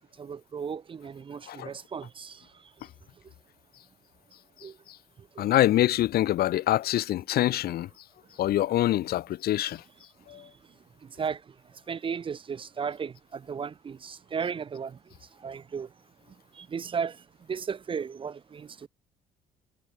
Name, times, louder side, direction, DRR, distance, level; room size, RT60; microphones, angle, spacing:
voice 1, 0.2-2.4 4.6-4.7 5.4-5.5 11.2-11.4 11.9-15.0 15.4-15.9 16.6-17.2 17.5-18.9, right 6 dB, 30° right, 0.7 m, -35 dB
voice 2, 5.4-7.9 8.4-9.8 10.3-10.4, left 14 dB, 65° left, 1.2 m, -25 dB
cardioid pair, 110°, 17 cm